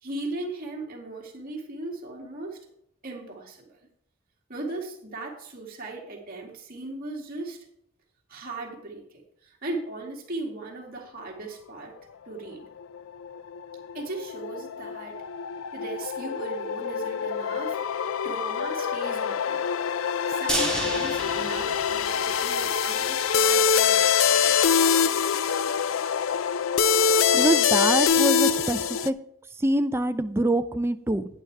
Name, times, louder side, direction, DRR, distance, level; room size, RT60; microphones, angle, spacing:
voice 1, 0.0-2.6 3.0-3.8 4.5-7.6 8.3-11.9 12.3-12.7 13.9-15.2 15.7-17.8 18.2-19.7 20.3-24.6, right 2 dB, 50° right, -1 dB, 2.5 m, -37 dB
sound 1, 12.8-29.1, left 7 dB, 80° left, 0.4 m, -24 dB
sound 2, 20.5-22.6 23.0-23.1 23.4-23.5, right 2 dB, 5° left, 2.6 m, -31 dB
voice 2, 27.3-29.1 29.6-31.2, right 1 dB, 15° right, 10 dB, 0.5 m, -25 dB
11.0 x 9.8 x 3.4 m, 0.73 s
head